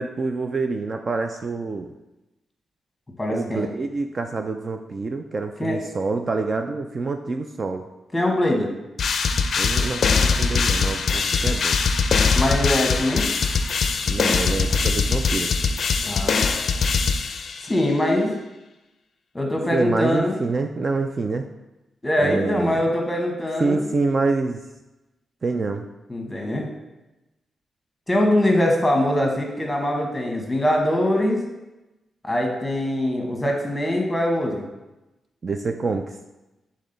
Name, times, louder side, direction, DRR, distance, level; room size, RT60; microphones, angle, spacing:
voice 1, 0.0-1.9 3.3-7.9 9.6-11.8 14.1-15.5 19.7-21.5 22.2-22.8 23.6-24.6 25.4-25.9 35.4-36.1, right 3 dB, 35° right, 5 dB, 0.3 m, -26 dB
voice 2, 3.2-3.7 5.6-5.8 8.1-8.7 12.3-13.3 16.0-16.3 17.6-18.3 19.3-20.4 22.0-23.8 26.1-26.7 28.1-31.4 32.2-34.6, left 1 dB, 10° left, 1 dB, 1.1 m, -22 dB
sound 1, 9.0-17.8, left 5 dB, 55° left, 0.4 m, -22 dB
7.3 x 3.8 x 3.9 m, 1.0 s
wide cardioid pair, 140°, 0 cm